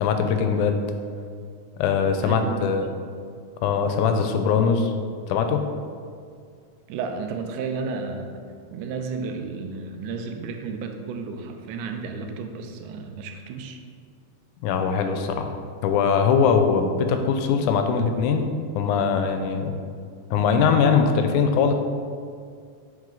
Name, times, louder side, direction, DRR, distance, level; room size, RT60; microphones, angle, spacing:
voice 1, 0.0-0.8 1.8-2.8 3.6-4.9 5.3-5.6 14.6-15.5 15.8-18.5 18.8-19.7 20.3-21.7, left 6 dB, 90° left, 6 dB, 2.0 m, -21 dB
voice 2, 2.2-3.0 6.9-8.3 8.7-13.8, right 4 dB, 90° right, 5 dB, 2.1 m, -32 dB
6.3 x 4.8 x 3.8 m, 2.2 s
omnidirectional pair, 3.5 m